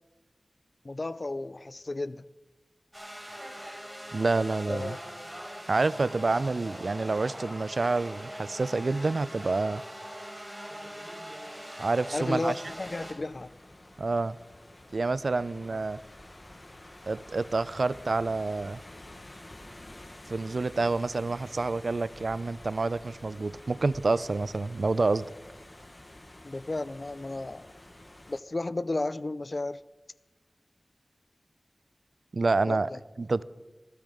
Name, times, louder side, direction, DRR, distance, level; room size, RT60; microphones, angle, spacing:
voice 1, 0.8-2.3 4.7-5.3 12.1-13.5 26.4-27.7 28.3-29.8 32.7-33.0, left 2 dB, 55° left, 0.5 m, -33 dB
sound 1, 2.9-13.1, equal, 10° right, 4.4 m, -42 dB
voice 2, 4.1-5.0 5.7-9.8 11.8-12.6 14.0-14.4 14.9-16.0 17.1-18.8 20.3-25.3 32.3-32.9 33.2-33.4, right 3 dB, 75° right, 0.4 m, -28 dB
sound 2, 12.7-28.4, left 1 dB, 35° left, 1.3 m, -49 dB
14.5 x 14.5 x 4.9 m
cardioid pair, 40°, 0 cm